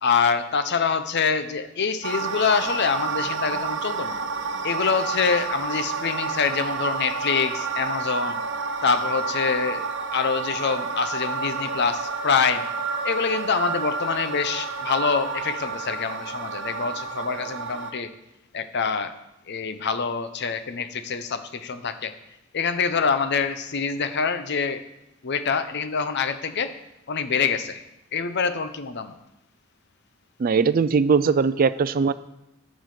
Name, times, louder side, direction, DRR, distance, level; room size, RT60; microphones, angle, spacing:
voice 1, 0.0-4.2 4.6-8.4 8.8-12.7 13.0-18.1 18.5-19.2 19.5-22.1 22.5-24.8 25.2-26.8 27.1-27.8 28.1-29.1, left 5 dB, 55° left, 11 dB, 0.7 m, -25 dB
sound 1, 2.0-17.9, right 4 dB, 65° right, 0.8 m, -30 dB
voice 2, 30.4-32.1, right 5 dB, 45° right, 14 dB, 0.4 m, -20 dB
12.0 x 6.2 x 4.9 m, 0.89 s
head